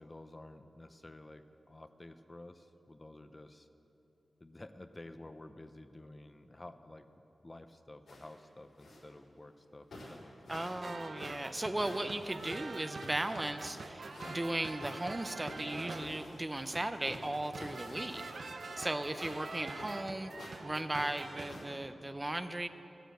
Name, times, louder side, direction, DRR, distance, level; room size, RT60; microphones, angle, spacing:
voice 1, 0.0-3.7 4.4-7.1 7.4-10.6, left 2 dB, 25° left, 9 dB, 0.7 m, -52 dB
sound 1, 8.1-8.4 8.8-9.1 9.6-9.7 9.9-10.8 11.1-14.4 14.8-16.8 17.0-20.1 20.3-20.6 20.9-21.6, left 1 dB, 85° left, 3.8 m, -49 dB
voice 2, 10.5-18.2 18.8-20.3 20.6-22.7, right 1 dB, 20° right, 9 dB, 0.6 m, -37 dB
sound 2, 10.8-16.1 16.7-21.5, right 3 dB, 65° right, 0.8 m, -45 dB
13.5 x 10.5 x 7.8 m, 2.9 s
wide cardioid pair, 70°, 0 cm